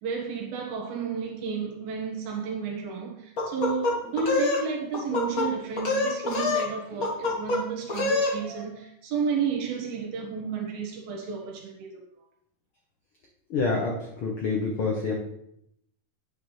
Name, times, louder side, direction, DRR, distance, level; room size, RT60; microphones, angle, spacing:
voice 1, 0.0-12.0, right 5 dB, 80° right, -1 dB, 3.3 m, -32 dB
sound 1, 3.4-4.6 4.9-5.5 5.8-6.7 7.0-7.6 7.9-8.3, left 3 dB, 60° left, 0.9 m, -25 dB
voice 2, 13.5-15.1, left 3 dB, 85° left, -2 dB, 1.1 m, -27 dB
9.4 x 8.0 x 3.3 m, 0.74 s
omnidirectional pair, 4.2 m